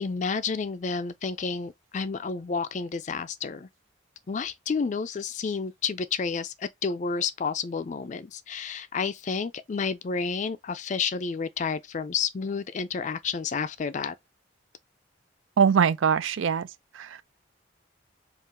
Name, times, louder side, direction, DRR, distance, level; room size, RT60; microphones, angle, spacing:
voice 1, 0.0-3.7 4.3-14.1, left 5 dB, 40° left, 0.4 m, -30 dB
voice 2, 15.6-16.7 16.9-17.2, right 7 dB, 85° right, 0.4 m, -22 dB
3.7 x 2.4 x 4.0 m
head